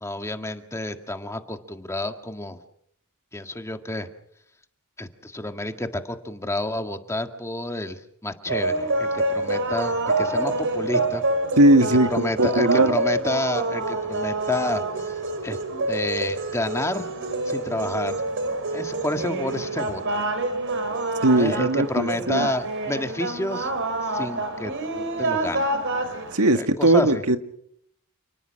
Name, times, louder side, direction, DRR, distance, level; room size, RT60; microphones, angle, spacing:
voice 1, 0.0-2.6 3.3-4.1 5.0-11.2 12.1-15.6 15.9-17.1 17.5-18.2 18.7-20.0 21.3-23.7 24.0-25.7 26.5-27.2, left 1 dB, 15° left, 6 dB, 1.8 m, -30 dB
sound 1, 8.5-26.4, right 2 dB, 60° right, 4.0 m, -27 dB
voice 2, 11.6-13.0 21.2-22.5 26.3-27.4, right 1 dB, 80° right, 8 dB, 2.0 m, -19 dB
29.5 x 19.5 x 6.5 m, 0.70 s
head